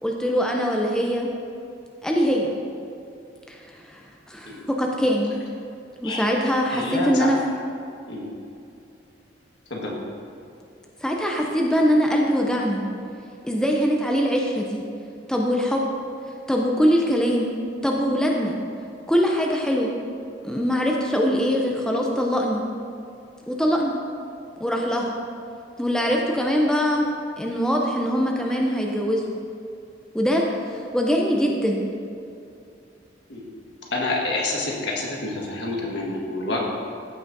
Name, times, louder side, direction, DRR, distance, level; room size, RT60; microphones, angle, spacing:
voice 1, 0.0-1.3 2.0-2.5 3.5-5.3 6.0-7.4 11.0-12.8 13.4-14.8 15.3-15.8 16.5-17.5 17.8-18.5 19.1-19.9 20.4-22.6 23.5-23.9 24.6-25.1 25.8-27.1 27.4-29.2 30.1-31.8, equal, 5° left, -1 dB, 0.6 m, -22 dB
voice 2, 6.7-7.3 8.1-8.3 9.7-10.0 33.3-33.4 33.9-36.6, left 2 dB, 70° left, -3 dB, 1.6 m, -28 dB
14.0 x 6.0 x 2.7 m, 2.5 s
head